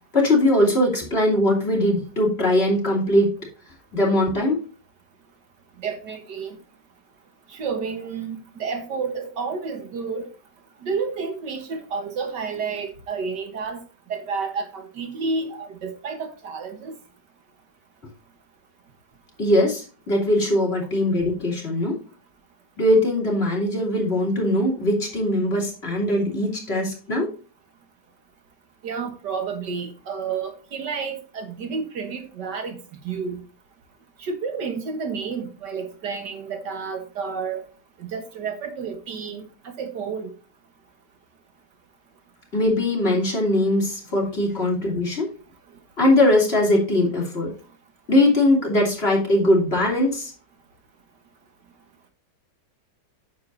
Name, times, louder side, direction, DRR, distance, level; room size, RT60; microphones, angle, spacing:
voice 1, 0.1-3.4 3.9-4.6 19.4-22.0 22.8-27.3 42.5-45.3 46.0-47.5 48.1-50.3, left 1 dB, 35° left, -1 dB, 3.2 m, -21 dB
voice 2, 5.8-6.6 7.5-10.3 10.8-13.8 14.1-16.9 28.8-32.8 33.0-33.4 34.2-37.6 38.0-40.3, right 5 dB, 70° right, 6 dB, 1.9 m, -30 dB
9.3 x 7.5 x 2.7 m, 0.35 s
omnidirectional pair, 1.9 m